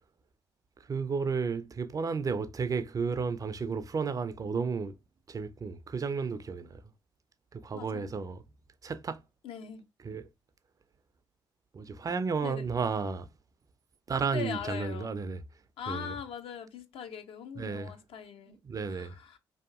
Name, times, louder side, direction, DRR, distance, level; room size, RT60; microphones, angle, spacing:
voice 1, 0.8-4.9 5.3-6.8 7.5-8.4 8.8-9.2 10.0-10.3 11.7-13.3 14.1-15.4 15.9-16.1 17.6-17.9 18.6-19.1, right 5 dB, 35° right, 0.3 m, -33 dB
voice 2, 7.7-8.2 9.4-9.8 12.4-12.7 14.3-15.1 15.8-18.6 18.9-19.4, left 8 dB, 60° left, 0.5 m, -41 dB
2.7 x 2.4 x 2.3 m
hypercardioid pair, 45°, 11 cm